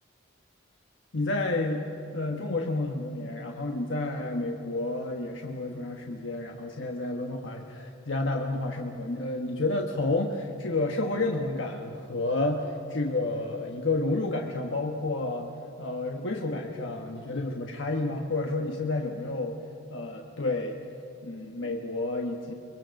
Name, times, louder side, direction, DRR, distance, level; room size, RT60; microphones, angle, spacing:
voice 1, 1.1-1.9 2.1-15.5 15.8-19.5 19.9-20.8 21.2-22.5, left 2 dB, 75° left, 1 dB, 1.3 m, -30 dB
23.5 x 21.5 x 6.5 m, 2.8 s
head